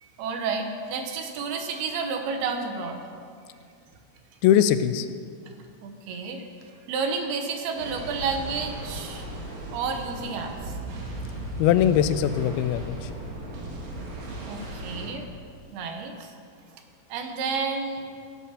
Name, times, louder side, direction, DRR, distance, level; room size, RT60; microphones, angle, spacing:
voice 1, 0.0-3.0 5.8-6.5 6.9-9.2 9.7-10.8 14.4-15.3 15.7-16.3 17.1-18.0, right 5 dB, 80° right, 5 dB, 3.1 m, -31 dB
voice 2, 4.4-5.1 11.6-13.0, left 10 dB, 90° left, 12 dB, 2.5 m, -21 dB
sound 1, 7.8-15.1, right 1 dB, 65° right, 3.6 m, -36 dB
17.5 x 8.5 x 5.7 m, 2.2 s
omnidirectional pair, 4.4 m